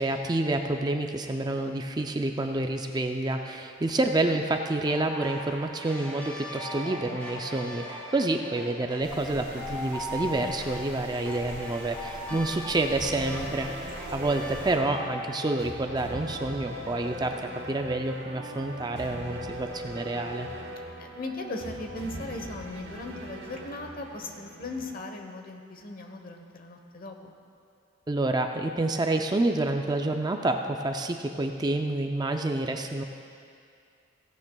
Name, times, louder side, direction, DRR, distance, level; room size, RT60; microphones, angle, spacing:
voice 1, 0.0-13.7 14.1-20.5 28.1-33.0, right 2 dB, 20° right, 5 dB, 0.4 m, -28 dB
sound 1, 4.9-15.6, left 1 dB, 10° left, 2.8 m, -39 dB
sound 2, 9.0-14.8, right 1 dB, 40° right, 3.2 m, -44 dB
voice 2, 12.3-12.8 21.0-27.3, left 2 dB, 45° left, 4 dB, 1.0 m, -38 dB
sound 3, 13.0-24.9, equal, 55° right, 1.2 m, -40 dB
16.0 x 15.5 x 2.3 m, 2.3 s
head